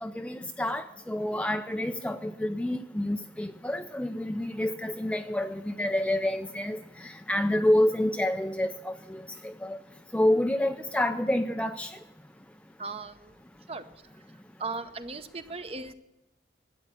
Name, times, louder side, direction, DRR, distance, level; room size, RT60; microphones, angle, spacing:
voice 1, 0.0-9.8 10.1-11.9, left 1 dB, 5° left, 7 dB, 0.4 m, -28 dB
voice 2, 12.8-13.3 13.7-13.8 14.6-15.9, right 3 dB, 30° right, 10 dB, 0.7 m, -37 dB
12.5 x 8.5 x 8.5 m, 0.95 s
head